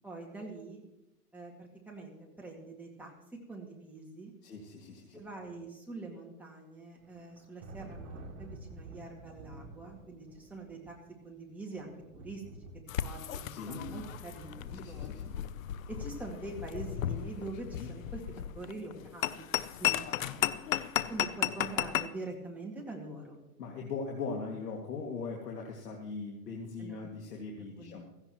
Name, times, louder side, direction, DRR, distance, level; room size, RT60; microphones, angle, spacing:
voice 1, 0.0-0.8 1.3-3.1 3.5-4.3 5.1-10.9 11.2-12.4 13.0-15.3 15.9-19.5 19.8-20.6 21.1-23.4 26.8-27.1 27.6-28.0, right 2 dB, 5° right, -2 dB, 2.2 m, -44 dB
voice 2, 4.4-5.2 13.5-13.8 14.7-15.2 17.8-17.9 20.0-20.1 20.9-21.1 23.6-28.0, left 4 dB, 85° left, 0 dB, 2.3 m, -40 dB
Thunder, 7.0-16.4, right 2 dB, 45° right, 4.6 m, -50 dB
sound 1, 12.9-22.1, left 12 dB, 60° left, 0.7 m, -35 dB
16.5 x 15.0 x 3.0 m, 0.92 s
hypercardioid pair, 150°, 47 cm